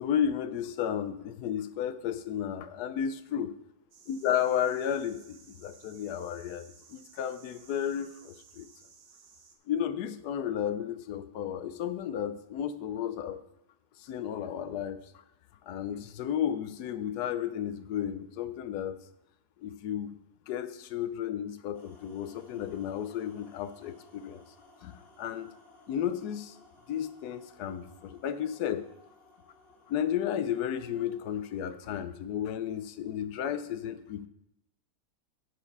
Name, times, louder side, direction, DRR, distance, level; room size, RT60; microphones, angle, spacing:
voice 1, 0.0-3.5 4.1-8.7 9.7-13.4 14.0-15.0 15.7-19.0 19.6-20.2 20.5-24.4 24.8-25.5 25.9-26.6 26.9-28.8 29.9-34.3, left 9 dB, 85° left, 12 dB, 1.2 m, -33 dB
sound 1, 3.9-9.6, right 6 dB, 60° right, 1.3 m, -57 dB
sound 2, 21.7-31.6, left 2 dB, 65° left, 2.1 m, -59 dB
10.5 x 4.8 x 5.4 m, 0.83 s
omnidirectional pair, 1.7 m